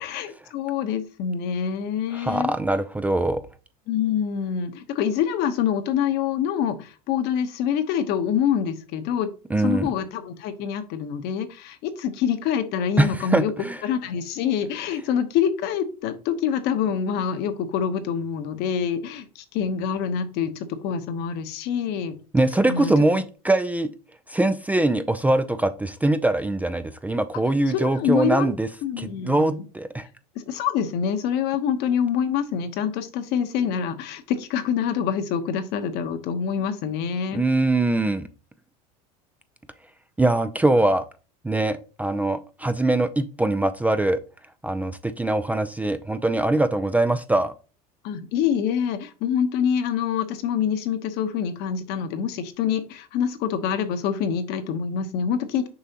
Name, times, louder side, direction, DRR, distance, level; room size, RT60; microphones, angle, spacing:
voice 1, 0.0-2.5 3.9-9.3 9.5-13.5 13.8-22.1 22.7-22.9 27.7-28.5 28.8-29.6 30.3-37.4 48.0-55.7, left 8 dB, 60° left, 9 dB, 1.0 m, -26 dB
voice 2, 2.1-3.4 9.5-9.9 13.0-13.8 22.3-23.9 24.3-28.7 29.0-30.1 37.3-38.3 40.2-41.1 41.4-44.2 44.6-47.5, right 2 dB, 10° right, 10 dB, 0.4 m, -22 dB
6.8 x 4.8 x 2.9 m, 0.34 s
supercardioid pair, 115°, 19 cm